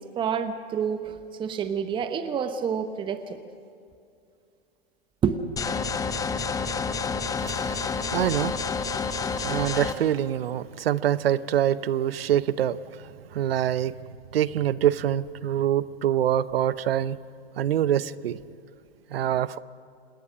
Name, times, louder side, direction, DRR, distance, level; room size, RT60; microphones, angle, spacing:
voice 1, 0.2-3.4 5.2-5.4, right 7 dB, 15° right, 10 dB, 1.0 m, -28 dB
sound 1, 5.6-9.9, left 5 dB, 10° left, 0.9 m, -29 dB
voice 2, 7.5-8.5 9.0-9.1 9.4-12.8 13.3-13.9 14.3-17.2 17.6-18.4 19.1-19.6, right 11 dB, 65° right, 18 dB, 0.8 m, -25 dB
27.0 x 20.5 x 6.3 m, 2.4 s
hypercardioid pair, 120°, 32 cm